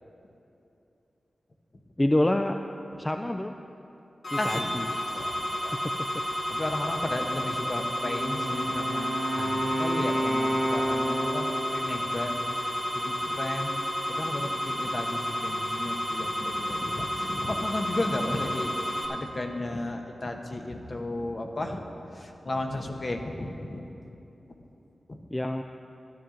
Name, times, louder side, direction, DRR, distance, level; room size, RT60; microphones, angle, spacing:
voice 1, 2.0-2.6 3.0-3.6 4.3-4.9 25.3-25.6, left 1 dB, 20° left, 6 dB, 0.4 m, -26 dB
sound 1, 4.2-19.0, equal, 70° left, 2.0 m, -31 dB
voice 2, 4.4-4.7 5.1-5.9 6.5-9.1 9.4-13.8 14.1-23.9 25.1-25.2, left 1 dB, 45° left, 4 dB, 1.0 m, -34 dB
Wind instrument woodwind instrument, 8.0-11.8, right 1 dB, 35° right, 1.1 m, -30 dB
12.5 x 11.5 x 3.8 m, 2.9 s
wide cardioid pair, 70°, 0 cm